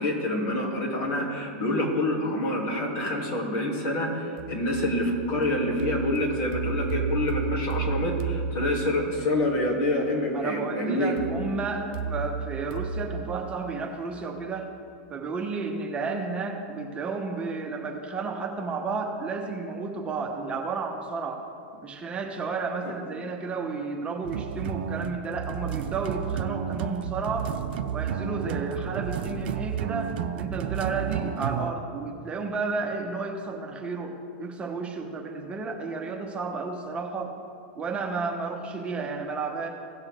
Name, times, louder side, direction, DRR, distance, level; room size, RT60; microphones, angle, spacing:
voice 1, 0.0-11.1, left 1 dB, 50° left, -2 dB, 2.9 m, -27 dB
sound 1, 4.4-9.3 11.2-14.2, right 5 dB, 50° right, 0.9 m, -33 dB
voice 2, 10.3-14.7 15.1-21.4 21.8-27.5 27.9-37.3 37.8-39.7, right 4 dB, 20° right, 1 dB, 1.0 m, -32 dB
sound 2, 24.2-31.7, right 9 dB, 70° right, 0.5 m, -31 dB
17.0 x 6.4 x 3.7 m, 2.3 s
supercardioid pair, 130°, 6 cm